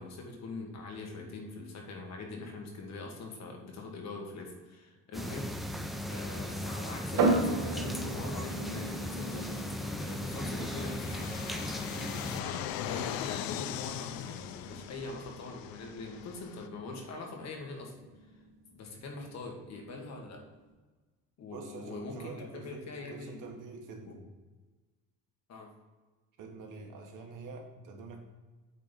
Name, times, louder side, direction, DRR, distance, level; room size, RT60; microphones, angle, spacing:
voice 1, 0.0-5.5 6.1-9.5 10.0-11.4 12.3-17.9 18.7-20.4 21.4-23.4 24.1-24.2 25.5-25.7, left 3 dB, 50° left, 1 dB, 1.6 m, -43 dB
sound 1, 5.1-12.4, equal, ahead, 0.4 m, -37 dB
sound 2, 7.2-20.7, right 2 dB, 85° right, 2.0 m, -37 dB
Fixed-wing aircraft airplane, 7.4-16.7, left 11 dB, 75° left, 0.5 m, -41 dB
voice 2, 21.5-24.2 26.4-28.2, right 4 dB, 60° right, 2 dB, 1.5 m, -46 dB
8.3 x 3.9 x 5.2 m, 1.3 s
cardioid pair, 140°, 35 cm